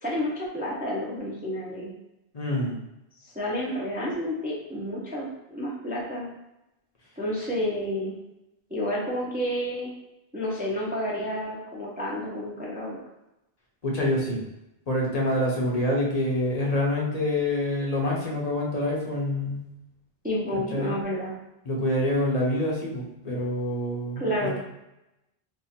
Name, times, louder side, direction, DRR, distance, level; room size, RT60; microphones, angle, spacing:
voice 1, 0.0-1.9 3.3-6.3 7.2-8.1 8.7-9.9 10.3-13.0 20.2-21.3 24.2-24.6, equal, 10° right, -5 dB, 0.5 m, -30 dB
voice 2, 2.3-2.8 13.8-14.4 14.9-19.6 20.5-21.0 21.6-24.6, left 1 dB, 40° left, -2 dB, 0.8 m, -26 dB
2.7 x 2.4 x 4.2 m, 0.91 s
omnidirectional pair, 1.1 m